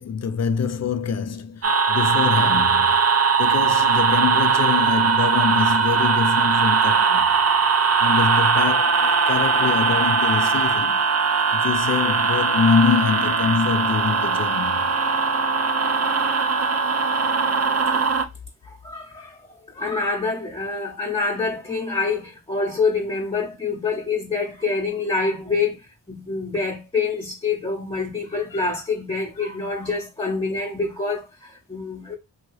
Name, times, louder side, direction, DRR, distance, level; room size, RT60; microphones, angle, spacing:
voice 1, 0.0-3.0 3.4-7.3 8.0-11.0 11.5-14.8, left 6 dB, 40° left, 0.4 m, -24 dB
sound 1, 1.6-18.3, right 5 dB, 35° right, 0.5 m, -20 dB
voice 2, 18.6-32.1, left 4 dB, 10° left, 0.8 m, -26 dB
2.8 x 2.7 x 3.0 m
cardioid pair, 40°, 44 cm